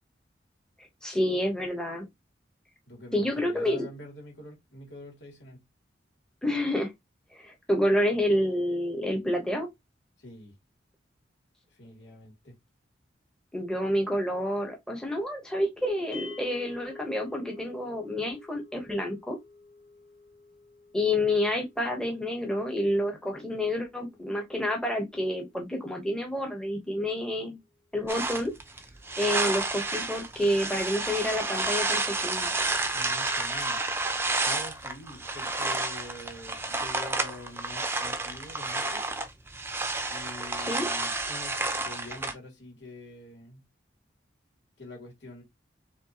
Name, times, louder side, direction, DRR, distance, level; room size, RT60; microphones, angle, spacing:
voice 1, 1.0-2.0 3.1-3.9 6.4-6.9 7.3-9.7 13.5-19.4 20.9-27.6 27.9-28.5 29.2-32.5 40.7-40.9, left 1 dB, 5° left, 1.0 m, -28 dB
voice 2, 2.9-5.6 10.2-10.5 11.7-12.5 30.4-30.6 32.9-33.8 34.4-39.0 40.1-43.6 44.8-45.4, left 1 dB, 85° left, 2.4 m, -45 dB
sound 1, 16.1-26.4, left 4 dB, 65° left, 2.2 m, -50 dB
sound 2, 28.1-42.3, right 2 dB, 15° right, 0.6 m, -30 dB
4.5 x 3.3 x 2.8 m
head